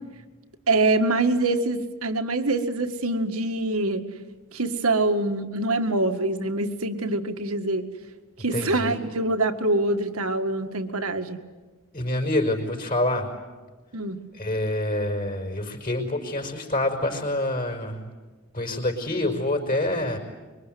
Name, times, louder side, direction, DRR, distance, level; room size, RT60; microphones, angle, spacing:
voice 1, 0.7-4.0 4.5-7.9 8.4-11.4 13.9-14.2, right 2 dB, 80° right, 7 dB, 2.0 m, -24 dB
voice 2, 8.5-9.0 11.9-13.3 14.3-18.1 18.5-20.2, left 1 dB, 40° left, 2 dB, 5.3 m, -26 dB
25.5 x 23.5 x 9.4 m, 1.3 s
head